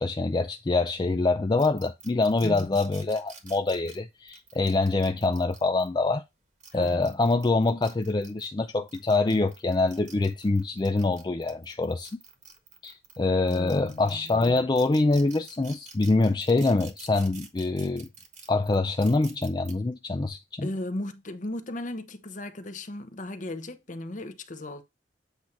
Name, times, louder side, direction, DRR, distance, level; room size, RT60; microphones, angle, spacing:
voice 1, 0.0-6.2 6.7-12.1 12.8-18.1 18.5-20.7, left 3 dB, 25° left, 0.4 m, -25 dB
sound 1, 1.6-5.9 6.4-8.5 8.9-13.2 13.5-19.7, right 6 dB, 45° right, 1.5 m, -49 dB
voice 2, 2.4-2.8 6.7-7.1 13.5-14.5 20.6-24.8, left 1 dB, 45° left, 0.9 m, -36 dB
8.1 x 2.8 x 5.8 m
head